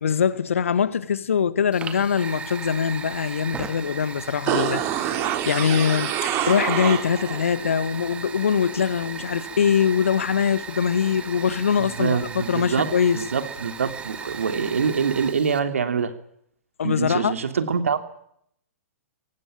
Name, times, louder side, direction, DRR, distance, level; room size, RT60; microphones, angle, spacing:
voice 1, 0.0-5.1 5.5-13.2 16.8-17.3, left 7 dB, 60° left, 1.8 m, -23 dB
Fire, 1.7-15.6, right 5 dB, 15° right, 2.2 m, -37 dB
sound 1, 4.5-7.4 7.8-7.9, right 10 dB, 30° right, 3.6 m, -26 dB
voice 2, 11.8-16.1 16.8-18.0, right 6 dB, 65° right, 2.9 m, -25 dB
23.5 x 19.5 x 9.0 m
figure-of-eight pair, 110°, 8 cm